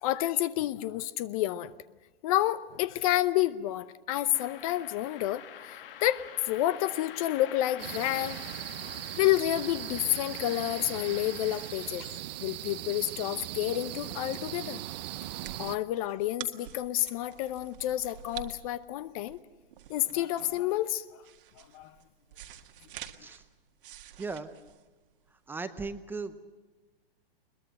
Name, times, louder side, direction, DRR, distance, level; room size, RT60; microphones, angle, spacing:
voice 1, 0.0-1.7 2.2-8.4 8.8-12.1 12.4-14.8 15.6-19.4 19.9-21.0 21.7-21.9, left 14 dB, 35° left, 16 dB, 0.7 m, -29 dB
sound 1, 4.3-12.4, left 10 dB, 65° left, 1.6 m, -47 dB
sound 2, 7.8-15.8, right 15 dB, 45° right, 0.7 m, -39 dB
sound 3, 14.4-25.5, right 11 dB, 60° right, 1.8 m, -49 dB
voice 2, 24.2-24.5 25.5-26.4, right 4 dB, 5° right, 10 dB, 0.7 m, -37 dB
22.0 x 21.5 x 7.7 m, 1.2 s
hypercardioid pair, 145°, 30 cm